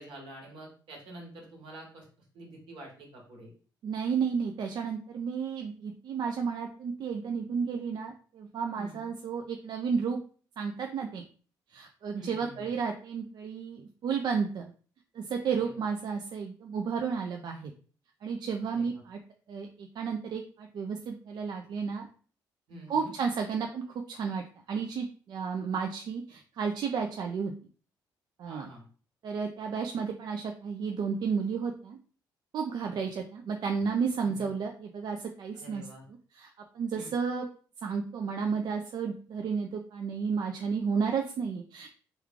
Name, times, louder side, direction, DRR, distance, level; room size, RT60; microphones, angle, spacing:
voice 1, 0.0-2.1 2.3-3.5 8.8-9.1 12.1-12.7 15.4-15.7 18.7-19.0 22.7-23.1 28.4-28.8 32.8-33.0 34.2-34.5 35.5-36.0 36.9-37.2, right 1 dB, 75° right, -1 dB, 1.3 m, -47 dB
voice 2, 3.8-10.2 10.6-11.2 11.7-14.7 15.1-17.7 18.2-19.2 19.5-22.1 22.9-27.5 28.4-28.7 29.2-32.0 32.5-35.9 36.3-37.5 37.8-41.9, right 6 dB, 60° right, 3 dB, 0.4 m, -32 dB
3.1 x 2.3 x 3.5 m, 0.41 s
cardioid pair, 85°, 8 cm